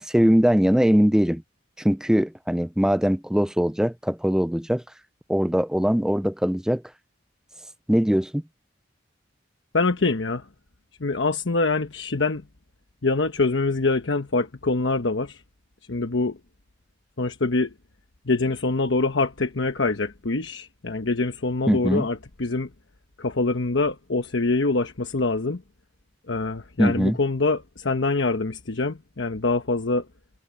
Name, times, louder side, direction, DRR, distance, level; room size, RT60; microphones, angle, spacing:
voice 1, 0.0-1.4 1.8-4.8 5.3-6.8 7.9-8.4 21.7-22.1 26.8-27.2, equal, 5° right, 0.4 m, -21 dB
voice 2, 9.7-10.5 11.0-12.4 13.0-15.4 15.9-16.4 17.2-17.7 18.2-22.7 23.2-25.6 26.3-30.1, left 3 dB, 80° left, 1.1 m, -24 dB
head